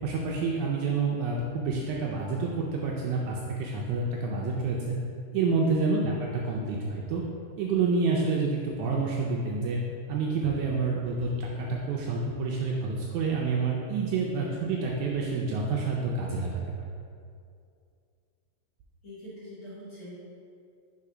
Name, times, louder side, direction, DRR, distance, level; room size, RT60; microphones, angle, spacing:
voice 1, 0.0-5.0 5.3-7.2 7.6-9.8 10.1-16.5, right 4 dB, 80° right, -2 dB, 1.8 m, -28 dB
voice 2, 19.0-20.1, left 1 dB, 45° left, -10 dB, 2.0 m, -43 dB
5.5 x 4.2 x 4.9 m, 2.4 s
omnidirectional pair, 3.8 m